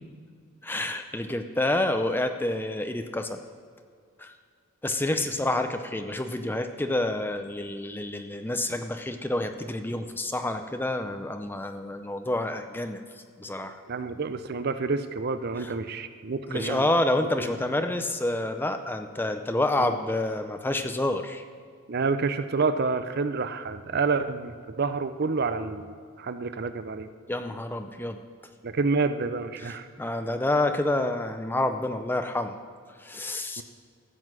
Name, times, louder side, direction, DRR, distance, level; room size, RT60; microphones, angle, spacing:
voice 1, 0.6-3.4 4.2-4.3 4.8-13.0 13.4-13.8 15.6-15.7 16.5-21.4 27.3-28.2 30.0-32.6 33.0-33.6, left 1 dB, 10° left, 7 dB, 0.5 m, -28 dB
voice 2, 13.9-16.9 17.2-17.7 19.8-20.0 21.9-27.1 28.6-29.9 33.6-33.7, right 4 dB, 45° right, 11 dB, 0.5 m, -29 dB
14.0 x 7.8 x 6.2 m, 2.1 s
head